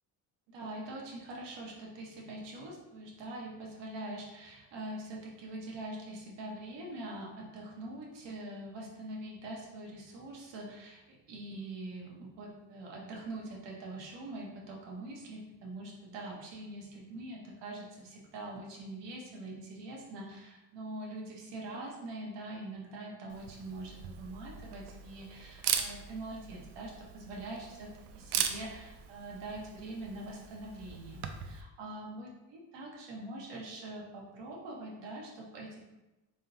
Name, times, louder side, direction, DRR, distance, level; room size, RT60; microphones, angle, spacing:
voice 1, 0.5-35.8, right 2 dB, 90° right, -2 dB, 1.1 m, -44 dB
Camera, 23.3-31.6, right 8 dB, 70° right, 0.5 m, -39 dB
4.1 x 3.6 x 2.7 m, 1.0 s
cardioid pair, 140°, 42 cm